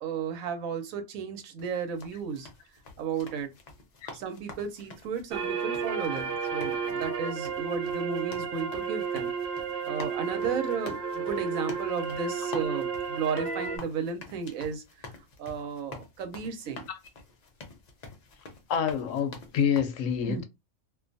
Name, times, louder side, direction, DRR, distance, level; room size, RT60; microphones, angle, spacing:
voice 1, 0.0-2.5 3.0-3.5 4.1-9.3 9.8-14.8 15.4-16.9 20.3-20.4, right 6 dB, 85° right, 1.1 m, -34 dB
sound 1, 1.6-19.8, left 3 dB, 55° left, 0.4 m, -47 dB
sound 2, 5.3-13.8, right 6 dB, 55° right, 0.7 m, -32 dB
voice 2, 18.7-20.4, left 7 dB, 75° left, 0.9 m, -27 dB
2.5 x 2.3 x 2.5 m
omnidirectional pair, 1.4 m